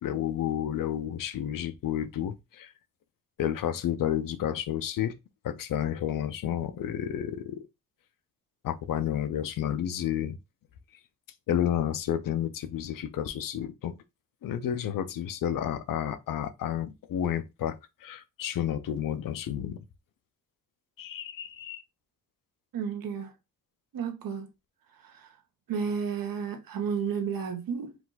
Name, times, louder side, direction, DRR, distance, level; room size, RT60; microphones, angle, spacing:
voice 1, 0.0-2.7 3.4-5.1 5.4-7.7 8.6-10.4 11.5-13.9 14.4-19.8 21.0-21.8, left 10 dB, 70° left, 0.6 m, -31 dB
voice 2, 22.7-23.3 23.9-24.5 24.9-25.4 25.7-28.0, right 6 dB, 75° right, 1.1 m, -32 dB
4.7 x 2.5 x 3.8 m
wide cardioid pair, 180°, 35 cm